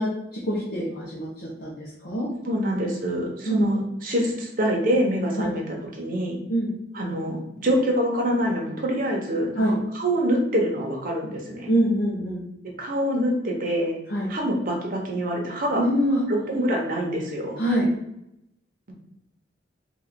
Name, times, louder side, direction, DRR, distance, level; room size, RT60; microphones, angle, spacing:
voice 1, 0.0-2.3 3.4-3.6 5.4-5.5 6.5-6.7 9.6-9.7 11.7-12.4 14.1-14.3 15.8-16.2 17.6-17.9, equal, 60° left, -5 dB, 0.9 m, -25 dB
voice 2, 2.4-5.6 5.9-6.4 6.9-9.5 9.9-11.7 12.8-14.0 14.3-15.8 16.3-17.6, equal, 50° right, -1 dB, 0.9 m, -25 dB
3.1 x 2.5 x 4.0 m, 0.81 s
head